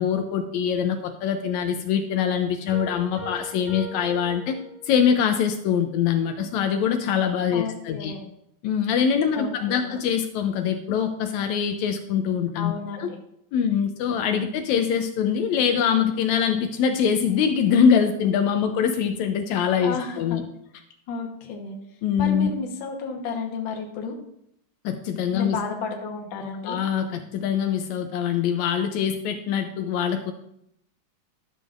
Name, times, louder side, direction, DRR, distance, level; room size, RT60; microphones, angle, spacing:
voice 1, 0.0-4.6 4.9-8.1 8.6-13.1 13.5-20.4 22.0-22.5 24.9-25.6 26.7-30.3, left 7 dB, 80° left, 6 dB, 1.9 m, -23 dB
sound 1, 2.7-5.2, equal, 5° left, 1.8 m, -41 dB
voice 2, 7.5-8.3 9.3-9.9 12.5-13.1 19.8-20.4 21.1-21.7 22.2-24.2 25.3-26.8, left 5 dB, 55° left, 1 dB, 1.5 m, -32 dB
12.0 x 6.7 x 2.5 m, 0.75 s
omnidirectional pair, 3.4 m